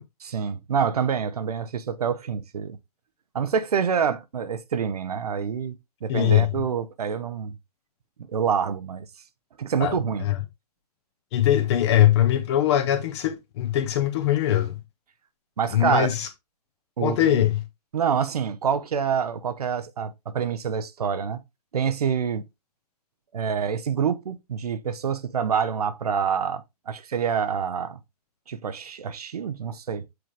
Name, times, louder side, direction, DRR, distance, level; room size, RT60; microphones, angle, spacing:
voice 1, 0.2-2.8 3.3-5.7 6.0-7.5 8.3-9.1 9.6-10.3 15.6-16.1 17.0-17.4 17.9-21.4 21.7-22.4 23.3-28.0 28.5-30.1, right 7 dB, 70° right, 0.8 m, -26 dB
voice 2, 6.1-6.5 9.8-10.4 11.3-14.8 15.7-16.3 17.0-17.6, left 12 dB, 40° left, 1.3 m, -21 dB
7.8 x 3.7 x 3.3 m
figure-of-eight pair, 120°, 20 cm